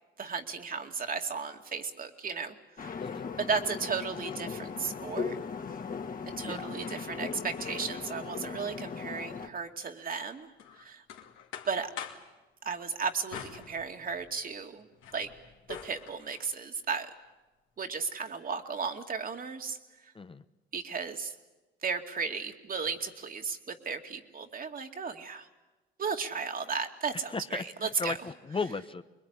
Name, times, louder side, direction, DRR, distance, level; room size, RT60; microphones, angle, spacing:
voice 1, 0.2-2.9 3.4-5.4 6.3-10.5 10.8-11.0 11.7-11.9 12.6-14.8 15.1-15.3 15.7-17.1 17.8-19.8 20.7-21.3 21.8-25.5 26.0-28.2, right 5 dB, 45° right, 5 dB, 2.4 m, -35 dB
sound 1, 2.8-9.5, left 5 dB, 45° left, 2.1 m, -38 dB
voice 2, 6.4-6.7 20.1-20.4 27.3-29.0, left 4 dB, 25° left, 10 dB, 1.0 m, -36 dB
sound 2, 10.6-12.3 13.3-14.4 14.8-16.5, left 7 dB, 85° left, 2.9 m, -45 dB
25.0 x 21.5 x 9.8 m, 1.1 s
cardioid pair, 90°, 20 cm